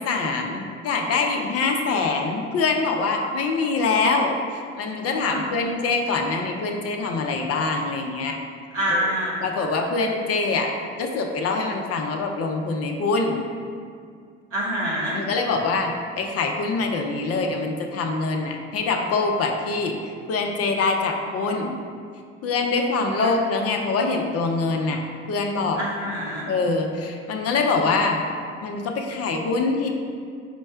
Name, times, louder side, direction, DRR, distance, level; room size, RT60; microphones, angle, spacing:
voice 1, 0.0-8.4 8.9-9.1 9.4-10.7 11.0-13.4 15.1-21.7 22.4-25.8 26.5-28.2 28.6-29.9, left 3 dB, 40° left, 3 dB, 0.6 m, -24 dB
voice 2, 5.2-5.7 8.7-9.5 14.5-15.2 23.2-23.3 25.8-26.5, right 1 dB, 85° right, -7 dB, 1.1 m, -26 dB
4.5 x 2.1 x 4.4 m, 2.2 s
hypercardioid pair, 55°, 36 cm